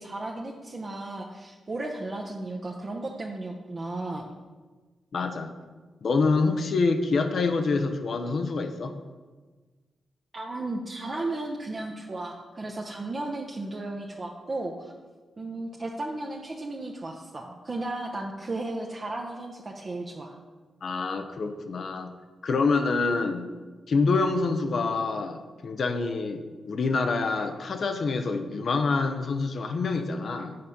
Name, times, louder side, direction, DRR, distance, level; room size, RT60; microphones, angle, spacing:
voice 1, 0.0-4.3 10.3-14.9 15.4-20.4, right 2 dB, 40° right, -1 dB, 0.7 m, -34 dB
voice 2, 5.1-5.5 6.0-9.0 20.8-22.1 22.4-23.5 23.9-30.6, left 4 dB, 65° left, 7 dB, 0.7 m, -26 dB
6.7 x 4.2 x 5.3 m, 1.4 s
supercardioid pair, 50°, 0 cm